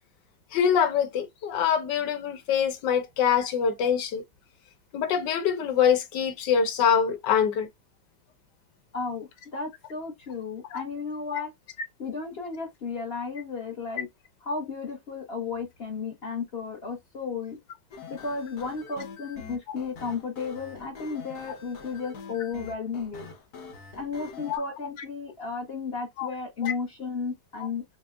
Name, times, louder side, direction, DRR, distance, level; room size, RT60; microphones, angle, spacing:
voice 1, 0.5-4.2 4.9-7.7 10.7-10.8 11.3-11.5 24.4-24.6 26.2-26.3 26.6-26.7, left 7 dB, 90° left, 1.5 m, -24 dB
voice 2, 8.9-11.5 12.0-14.1 14.4-17.6 18.1-23.3 24.0-27.8, left 4 dB, 45° left, 0.9 m, -34 dB
sound 1, 17.9-24.6, left 5 dB, 65° left, 1.5 m, -44 dB
6.2 x 2.1 x 2.3 m
omnidirectional pair, 1.9 m